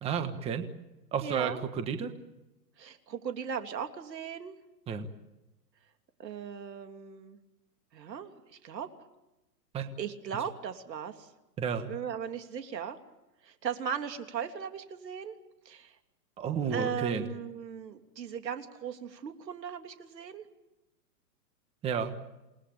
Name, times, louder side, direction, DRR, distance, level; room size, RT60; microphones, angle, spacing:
voice 1, 0.0-0.6 1.1-2.1 4.9-5.1 9.7-9.9 11.6-11.9 16.4-17.2 21.8-22.1, right 6 dB, 10° right, 8 dB, 1.4 m, -31 dB
voice 2, 1.2-1.6 2.8-4.6 6.2-7.4 7.9-8.9 10.0-11.3 11.9-13.0 13.4-15.3 15.6-16.0 16.7-20.5, right 8 dB, 90° right, 6 dB, 3.3 m, -38 dB
28.5 x 19.5 x 8.9 m, 0.98 s
hypercardioid pair, 160°, 48 cm